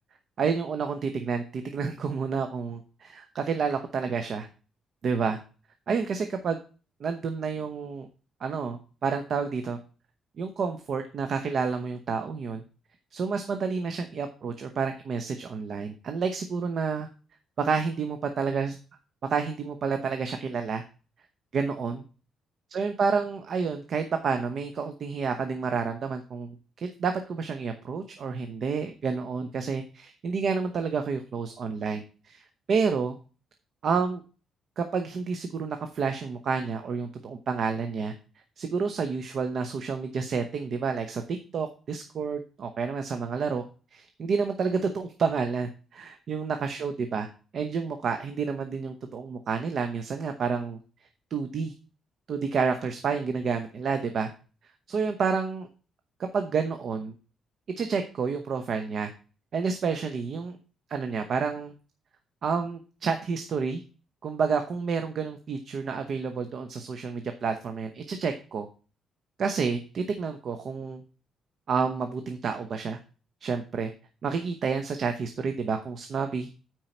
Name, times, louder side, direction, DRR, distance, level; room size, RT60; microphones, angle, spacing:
voice 1, 0.4-4.5 5.0-5.4 5.9-6.6 7.0-8.1 8.4-9.8 10.4-12.6 13.1-17.1 17.6-18.8 19.3-20.8 21.5-22.0 22.7-32.4 32.7-33.2 33.8-34.2 34.8-38.1 38.6-43.6 43.9-47.3 47.5-50.8 51.3-51.7 52.3-54.3 54.9-55.7 56.2-57.1 57.8-59.1 59.5-60.6 60.9-61.7 62.4-63.8 64.2-68.7 69.4-71.0 71.7-73.0 73.4-73.9 74.2-76.5, right 5 dB, 55° right, 7 dB, 0.9 m, -29 dB
9.2 x 4.6 x 4.4 m, 0.35 s
cardioid pair, 90°, 0 cm